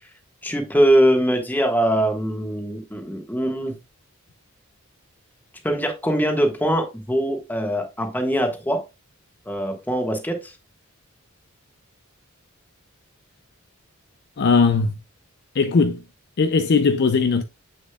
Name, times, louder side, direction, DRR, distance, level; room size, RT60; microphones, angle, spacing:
voice 1, 0.4-3.7 5.6-8.8 9.5-10.5, equal, 10° left, 1.4 m, -22 dB
voice 2, 14.4-14.9 15.6-16.0 16.4-17.4, left 4 dB, 50° left, 0.5 m, -18 dB
7.4 x 6.6 x 2.3 m
head